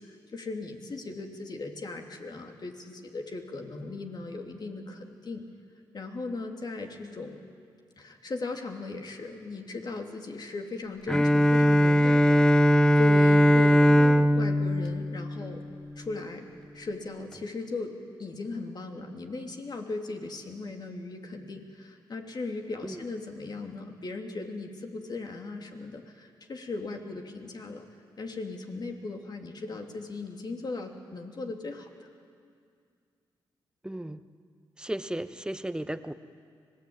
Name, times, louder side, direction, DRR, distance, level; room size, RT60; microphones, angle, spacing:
voice 1, 0.0-5.5 5.9-7.4 8.0-15.6 16.0-16.5 16.7-27.9 28.2-32.1, left 3 dB, 50° left, 3 dB, 3.1 m, -38 dB
Bowed string instrument, 11.1-16.0, equal, 10° left, 1.0 m, -20 dB
voice 2, 33.8-34.2 34.8-36.1, right 1 dB, 10° right, 11 dB, 1.2 m, -35 dB
25.5 x 19.0 x 8.9 m, 2.2 s
cardioid pair, 55°, 9 cm